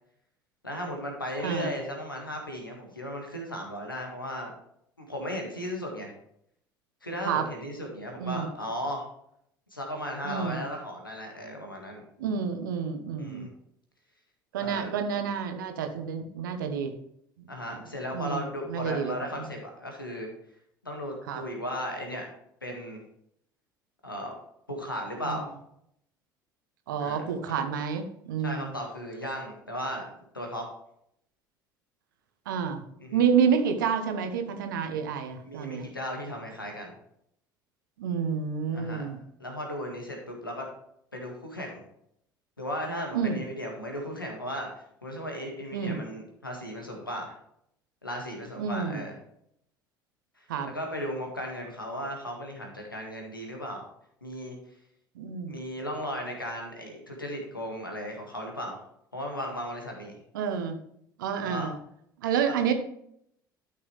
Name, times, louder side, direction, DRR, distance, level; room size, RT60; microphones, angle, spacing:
voice 1, 0.6-4.5 5.0-6.1 7.0-9.0 9.7-12.0 13.2-13.5 14.5-14.9 17.5-20.3 20.8-22.2 22.6-23.0 24.0-24.3 24.7-25.5 27.0-27.2 28.4-30.0 30.3-30.6 33.0-33.2 35.4-36.9 38.7-39.0 39.4-40.7 41.1-41.8 42.6-47.3 48.0-49.1 50.4-53.8 54.2-54.5 55.5-58.8 59.1-60.2 61.4-61.7, equal, 90° left, 1 dB, 1.8 m, -36 dB
voice 2, 1.4-1.7 7.2-7.5 8.2-8.5 10.2-10.6 12.2-13.5 14.5-16.9 18.1-19.5 21.3-21.4 25.2-25.4 26.9-28.7 32.5-32.8 33.1-35.9 38.0-39.2 43.1-43.4 45.7-46.0 48.6-49.0 50.5-50.7 55.1-55.5 60.3-60.8 61.2-61.8 62.2-62.7, right 7 dB, 70° right, 7 dB, 1.1 m, -29 dB
12.5 x 6.0 x 3.3 m, 0.72 s
figure-of-eight pair, 60°, 11 cm